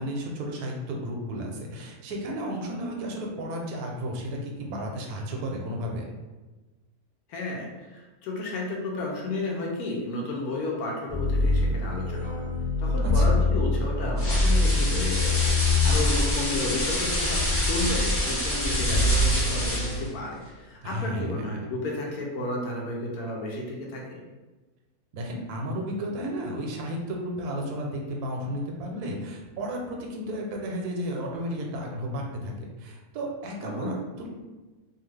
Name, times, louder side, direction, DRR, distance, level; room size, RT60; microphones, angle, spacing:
voice 1, 0.0-6.0 13.0-13.4 20.8-21.7 25.1-34.3, equal, 85° right, 0 dB, 1.1 m, -33 dB
voice 2, 7.3-12.4 12.8-24.2 33.6-33.9, left 2 dB, 80° left, -2 dB, 1.1 m, -32 dB
sound 1, 11.1-20.1, left 2 dB, 60° right, 0.4 m, -25 dB
sound 2, 14.2-20.1, left 1 dB, 15° left, 0.5 m, -27 dB
2.8 x 2.3 x 3.1 m, 1.2 s
omnidirectional pair, 1.6 m